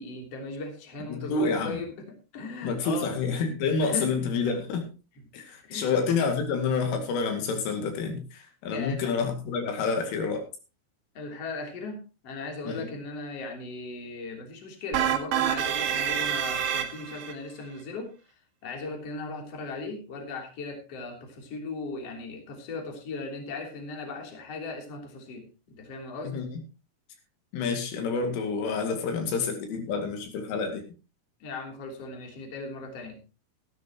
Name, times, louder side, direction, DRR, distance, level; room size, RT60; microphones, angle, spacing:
voice 1, 0.0-1.9 2.3-3.2 3.8-4.1 5.2-5.3 5.6-5.9 8.7-9.1 11.2-18.1 18.6-26.4 31.4-33.2, left 3 dB, 35° left, 2 dB, 3.7 m, -37 dB
voice 2, 1.1-1.8 2.6-4.9 5.3-10.5 12.6-12.9 26.2-26.6 27.5-30.8, left 5 dB, 80° left, 4 dB, 4.8 m, -28 dB
sound 1, 14.9-17.3, right 9 dB, 75° right, 3.8 m, -27 dB
16.0 x 13.0 x 3.0 m, 0.31 s
omnidirectional pair, 5.7 m